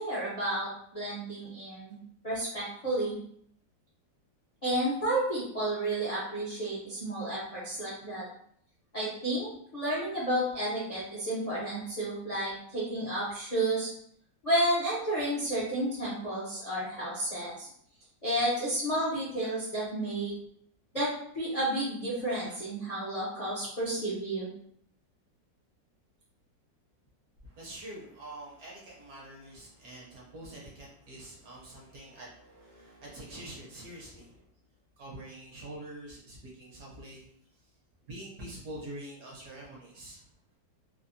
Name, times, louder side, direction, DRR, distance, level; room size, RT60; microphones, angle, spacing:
voice 1, 0.0-3.2 4.6-8.3 8.9-13.9 14.4-17.7 18.2-20.3 20.9-21.1 21.3-24.5, right 1 dB, 50° left, -8 dB, 0.4 m, -31 dB
voice 2, 27.4-34.4 35.0-37.2 38.1-40.2, right 1 dB, 60° right, -4 dB, 1.1 m, -45 dB
3.3 x 2.0 x 2.6 m, 0.66 s
omnidirectional pair, 2.0 m